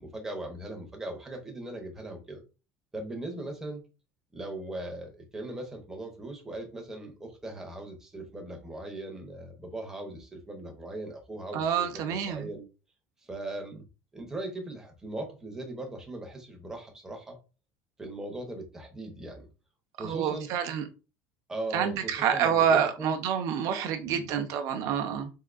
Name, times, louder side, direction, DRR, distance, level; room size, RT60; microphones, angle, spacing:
voice 1, 0.0-2.4 2.9-3.8 4.3-12.7 13.2-13.9 14.1-17.4 18.0-19.5 20.0-20.5 21.5-23.1 24.0-24.3, right 2 dB, 5° right, 2 dB, 0.6 m, -39 dB
voice 2, 11.5-12.5 20.0-20.8 21.7-25.3, right 8 dB, 45° right, 6 dB, 0.6 m, -27 dB
3.6 x 2.6 x 2.4 m, 0.30 s
cardioid pair, 180°, 8 cm